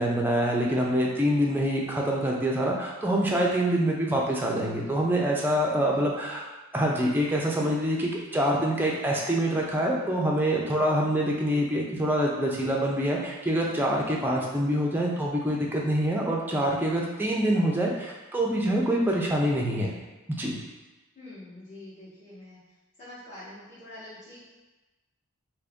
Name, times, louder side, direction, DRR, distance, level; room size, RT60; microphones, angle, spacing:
voice 1, 0.0-6.4 6.7-19.9 20.3-20.6, right 1 dB, 10° right, -2 dB, 0.4 m, -25 dB
voice 2, 5.8-6.1 21.1-22.6 23.0-24.4, left 1 dB, 35° left, -14 dB, 1.1 m, -46 dB
2.9 x 2.6 x 3.4 m, 1.1 s
head